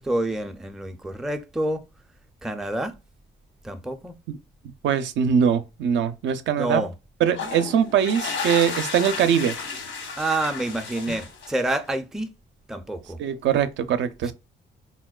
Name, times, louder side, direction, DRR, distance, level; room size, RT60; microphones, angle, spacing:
voice 1, 0.0-1.8 2.4-2.9 3.6-4.2 6.6-6.9 10.2-12.3 12.7-13.2 14.2-14.3, right 1 dB, ahead, 0.4 m, -28 dB
voice 2, 4.8-6.9 7.2-9.6 13.2-14.3, right 8 dB, 70° right, 0.4 m, -22 dB
sound 1, 7.3-11.8, left 5 dB, 85° left, 1.0 m, -33 dB
4.1 x 2.1 x 2.3 m
cardioid pair, 90°, 20 cm